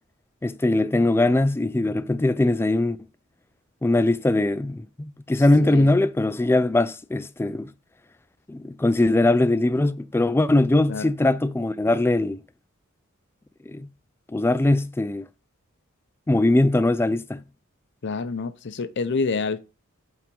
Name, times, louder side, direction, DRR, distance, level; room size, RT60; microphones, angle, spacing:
voice 1, 0.4-3.0 3.8-7.7 8.5-12.4 13.7-13.9 14.3-15.3 16.3-17.4, left 2 dB, 10° left, 0.3 m, -21 dB
voice 2, 5.6-5.9 10.9-11.1 18.0-19.6, left 4 dB, 55° left, 0.6 m, -27 dB
5.7 x 3.6 x 5.3 m
head